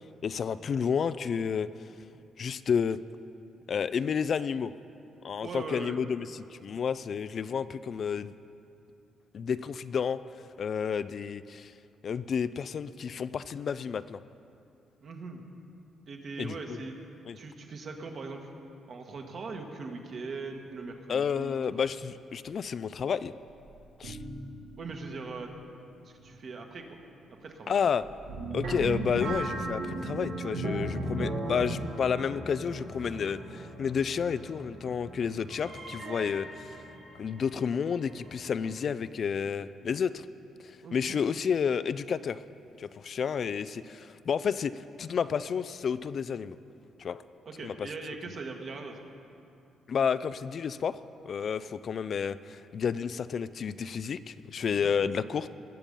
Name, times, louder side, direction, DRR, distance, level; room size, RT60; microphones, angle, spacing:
voice 1, 0.2-1.7 2.4-3.0 3.7-4.7 5.2-8.3 9.3-10.2 10.6-11.7 12.0-14.2 16.4-16.8 17.3-17.4 21.1-23.3 24.0-24.2 27.7-28.1 28.5-36.8 37.2-40.3 40.6-42.4 42.8-46.6 47.0-47.2 47.6-47.9 49.9-51.0 51.2-55.5, left 7 dB, 55° left, 14 dB, 0.3 m, -31 dB
voice 2, 5.4-6.0 15.0-15.4 16.1-17.0 17.3-18.5 18.9-21.8 24.8-25.5 26.0-27.0 27.4-27.7 40.8-41.2 47.4-49.0 54.7-54.9, right 4 dB, 55° right, 3 dB, 1.5 m, -40 dB
sound 1, 23.5-25.1 25.4-25.6 26.2-26.3 28.0-38.7, right 2 dB, 90° right, 2.5 m, -37 dB
19.5 x 7.0 x 5.4 m, 2.6 s
cardioid pair, 90°, 0 cm